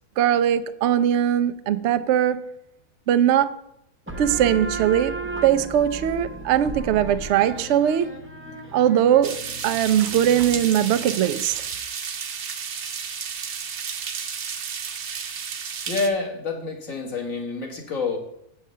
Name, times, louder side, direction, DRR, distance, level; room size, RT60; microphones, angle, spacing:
voice 1, 0.2-2.4 3.1-3.5 4.2-5.2 5.4-8.1 8.7-9.4 9.6-11.7, right 10 dB, 70° right, 0.6 m, -20 dB
sound 1, 4.1-11.4, right 2 dB, 15° right, 0.5 m, -35 dB
sound 2, 9.2-16.1, right 6 dB, 55° right, 1.0 m, -32 dB
voice 2, 15.9-18.2, left 4 dB, 55° left, 1.7 m, -27 dB
7.3 x 4.6 x 6.6 m
omnidirectional pair, 1.7 m